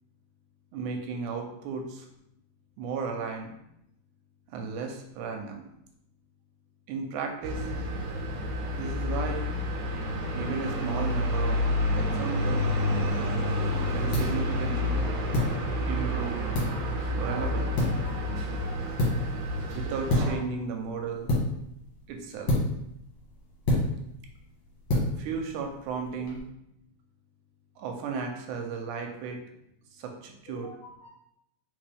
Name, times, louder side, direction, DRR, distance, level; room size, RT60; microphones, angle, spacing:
voice 1, 0.7-2.1 2.8-3.5 4.5-5.7 6.9-7.7 8.7-9.5 10.3-11.6 12.0-12.7 13.9-15.1 15.9-16.4 17.2-17.9 18.1-18.3 19.8-21.3 22.1-22.5 25.2-26.4 27.8-29.4 29.9-30.7, right 5 dB, 85° right, 3 dB, 2.0 m, -34 dB
sound 1, 7.4-20.4, left 1 dB, 70° right, 1.8 m, -29 dB
sound 2, 12.9-26.4, left 1 dB, 50° left, 1.9 m, -31 dB
voice 2, 17.7-18.8 30.5-31.1, left 5 dB, 80° left, 0 dB, 1.5 m, -49 dB
4.3 x 3.7 x 3.3 m, 0.80 s
omnidirectional pair, 3.5 m